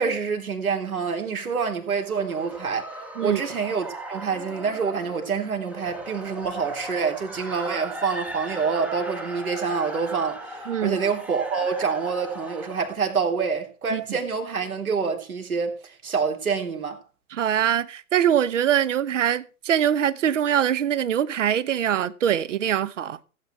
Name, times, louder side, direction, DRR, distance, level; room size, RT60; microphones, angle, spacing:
voice 1, 0.0-17.0, right 5 dB, 70° right, 3.5 m, -27 dB
sound 1, 1.9-12.9, right 1 dB, 5° right, 0.8 m, -38 dB
voice 2, 10.7-11.0 13.9-14.0 17.3-23.2, right 9 dB, 55° right, 1.0 m, -23 dB
15.5 x 8.3 x 4.6 m
figure-of-eight pair, 115°, 44 cm